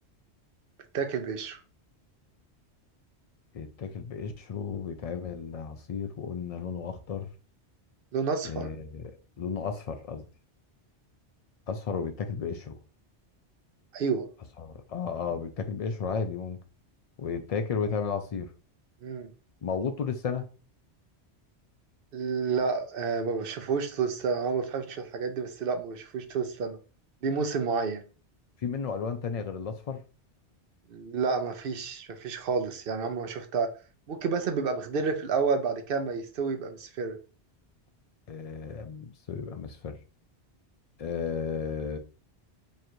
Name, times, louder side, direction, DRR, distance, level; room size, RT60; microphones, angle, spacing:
voice 1, 0.9-1.6 8.1-8.7 13.9-14.3 19.0-19.3 22.1-26.8 27.2-28.0 30.9-33.7 34.1-37.2, right 5 dB, 60° right, 0.8 m, -30 dB
voice 2, 3.5-7.3 8.4-10.2 11.7-12.8 14.6-16.6 17.2-18.5 19.6-20.5 28.6-30.0 38.3-40.0 41.0-42.0, left 6 dB, 70° left, 0.3 m, -33 dB
3.1 x 2.5 x 4.4 m
omnidirectional pair, 1.2 m